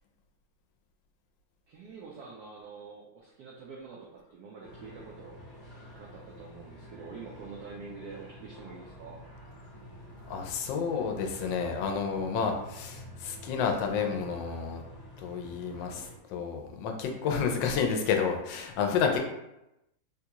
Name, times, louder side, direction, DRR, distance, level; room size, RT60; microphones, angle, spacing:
voice 1, 1.7-5.4 6.0-9.2 17.2-17.6 19.0-19.2, right 4 dB, 75° right, -3 dB, 0.9 m, -46 dB
sound 1, 4.6-16.1, equal, 30° left, 0.9 m, -49 dB
voice 2, 10.3-14.8 15.2-19.2, left 6 dB, 75° left, 3 dB, 1.2 m, -30 dB
3.8 x 2.3 x 2.8 m, 0.89 s
omnidirectional pair, 2.2 m